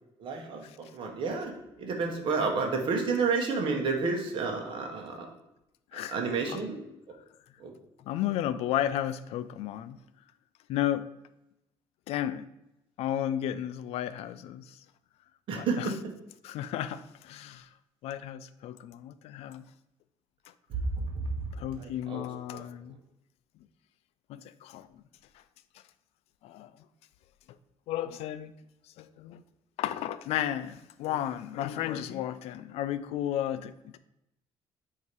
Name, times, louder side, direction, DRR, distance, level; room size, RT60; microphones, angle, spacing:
voice 1, 0.2-1.5 1.8-5.3 6.1-6.8 7.6-7.7 15.5-15.9 20.7-21.3 21.8-22.3 22.5-22.6, right 4 dB, 55° right, 1.2 m, -30 dB
voice 2, 5.9-6.2 6.5-6.6 8.0-10.0 10.7-11.1 12.1-12.5 13.0-14.8 15.5-15.9 16.4-17.7 18.0-19.6 21.5-23.0 24.3-24.9 25.3-25.4 26.4-26.7 27.9-28.5 29.0-29.4 29.8-34.0, left 11 dB, 85° left, 0.4 m, -33 dB
8.0 x 2.9 x 4.7 m
cardioid pair, 165°, 10 cm